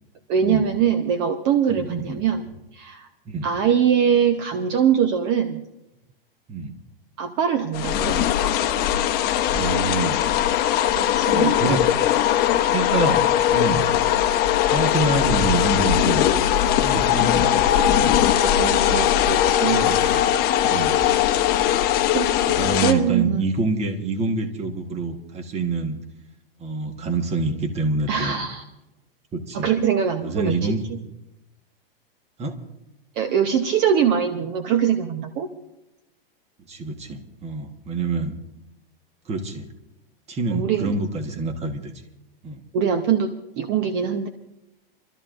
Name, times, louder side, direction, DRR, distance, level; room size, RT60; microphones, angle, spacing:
voice 1, 0.3-2.5 2.7-3.1 3.4-5.6 7.2-8.2 11.0-11.8 18.4-19.8 20.9-21.4 22.1-23.4 28.1-28.6 29.5-30.8 33.2-35.5 40.5-41.0 42.7-44.3, right 8 dB, 40° right, 8 dB, 0.9 m, -23 dB
voice 2, 1.7-2.2 3.2-3.5 6.5-6.7 9.5-10.3 11.3-11.9 12.6-13.9 14.2-16.3 16.7-18.2 19.7-20.1 20.6-20.9 22.5-26.0 26.6-28.4 29.3-29.7 30.2-30.8 32.4-32.6 36.7-38.3 39.2-39.7 40.3-41.9 42.4-42.6, right 3 dB, 20° right, 7 dB, 1.4 m, -27 dB
sound 1, 7.7-22.9, left 11 dB, 35° left, 0.9 m, -20 dB
28.5 x 13.0 x 2.6 m, 0.94 s
hypercardioid pair, 125°, 29 cm